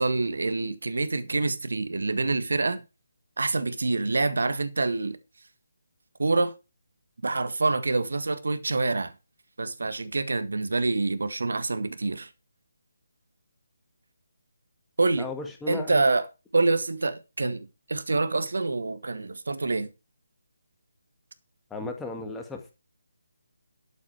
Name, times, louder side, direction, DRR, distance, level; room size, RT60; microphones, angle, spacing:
voice 1, 0.0-2.8 3.4-5.2 6.2-6.5 7.2-9.1 9.6-12.3 15.0-15.3 15.7-16.3 16.5-19.9, right 3 dB, 65° right, 1.8 m, -26 dB
voice 2, 15.2-16.0 21.7-22.7, left 3 dB, 5° left, 2.1 m, -35 dB
12.5 x 8.2 x 4.7 m
figure-of-eight pair, 150°, 0 cm